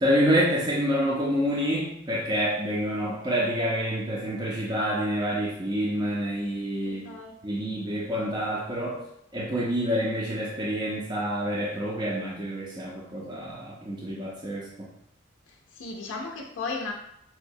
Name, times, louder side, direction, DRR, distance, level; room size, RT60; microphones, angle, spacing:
voice 1, 0.0-7.1 7.4-9.0 9.3-14.9, equal, 20° right, -5 dB, 0.4 m, -27 dB
voice 2, 6.8-7.7 15.7-16.9, left 3 dB, 70° left, 0 dB, 0.4 m, -35 dB
4.5 x 2.1 x 2.6 m, 0.75 s
head